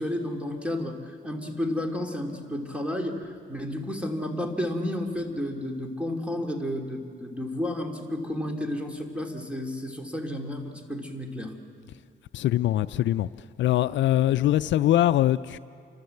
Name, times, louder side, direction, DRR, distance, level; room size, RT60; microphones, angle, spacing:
voice 1, 0.0-11.5, left 1 dB, 5° right, 2.8 m, -32 dB
voice 2, 12.3-13.3 13.6-15.6, left 13 dB, 70° left, 0.5 m, -22 dB
29.0 x 12.5 x 7.9 m
cardioid pair, 90°, 20 cm